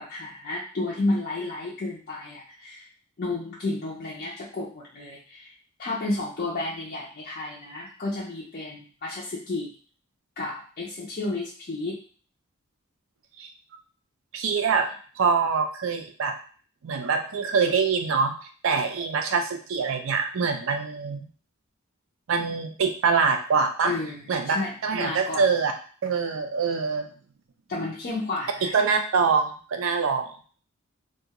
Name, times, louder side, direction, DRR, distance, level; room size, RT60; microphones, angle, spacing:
voice 1, 0.0-2.9 3.2-5.5 5.8-9.7 10.4-12.0 23.8-25.4 27.7-28.7, left 2 dB, 40° left, -6 dB, 0.5 m, -32 dB
voice 2, 14.3-14.9 15.2-16.3 16.8-18.3 18.6-21.2 22.3-23.9 24.3-24.6 24.8-25.7 26.0-27.1 28.7-30.3, right 5 dB, 65° right, 6 dB, 0.4 m, -24 dB
2.4 x 2.3 x 2.8 m, 0.42 s
head